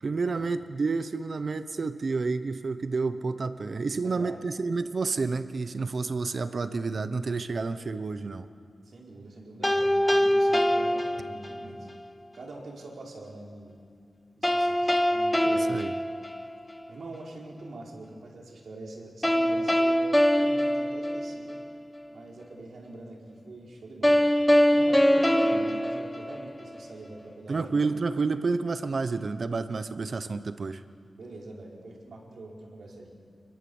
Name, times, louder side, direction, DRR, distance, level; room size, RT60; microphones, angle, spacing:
voice 1, 0.0-8.5 15.5-15.9 27.5-30.8, right 4 dB, 45° right, 11 dB, 0.9 m, -30 dB
voice 2, 4.0-4.4 8.8-11.9 12.3-13.8 14.3-15.8 16.9-20.0 20.4-21.6 22.1-24.2 24.7-27.7 31.1-33.1, right 2 dB, 65° right, -2 dB, 4.9 m, -44 dB
sound 1, 9.6-11.8 14.4-16.9 19.2-21.8 24.0-26.9, equal, 5° left, 1.1 m, -24 dB
27.5 x 21.5 x 7.2 m, 2.3 s
wide cardioid pair, 155°, 0 cm